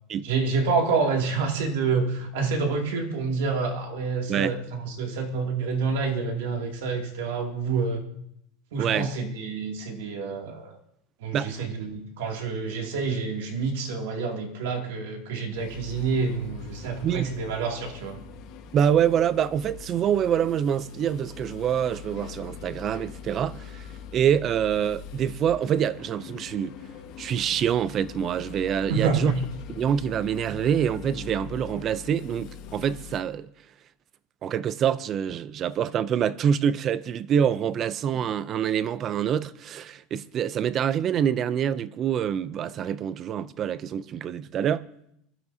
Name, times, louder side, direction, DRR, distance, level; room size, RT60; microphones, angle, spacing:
voice 1, 0.2-8.0 8.7-10.8 11.2-18.2 28.9-29.3, right 4 dB, 80° right, 2.4 m, -28 dB
voice 2, 8.8-9.1 11.3-11.5 17.0-17.3 18.7-26.8 27.2-29.3 29.7-33.5 34.4-44.9, right 8 dB, 30° right, 0.4 m, -26 dB
sound 1, 15.5-33.2, left 7 dB, 45° left, 1.3 m, -43 dB
22.0 x 12.5 x 2.7 m
supercardioid pair, 165°, 0 cm